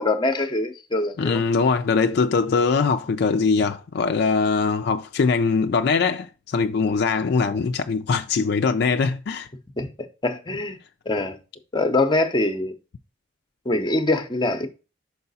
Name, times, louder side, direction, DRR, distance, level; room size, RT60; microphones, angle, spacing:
voice 1, 0.0-1.4 9.8-10.8 11.1-11.4 11.7-12.7 13.7-14.7, left 2 dB, 25° left, 0.7 m, -23 dB
voice 2, 1.2-9.5, left 4 dB, 55° left, 0.4 m, -22 dB
5.7 x 4.7 x 4.0 m
head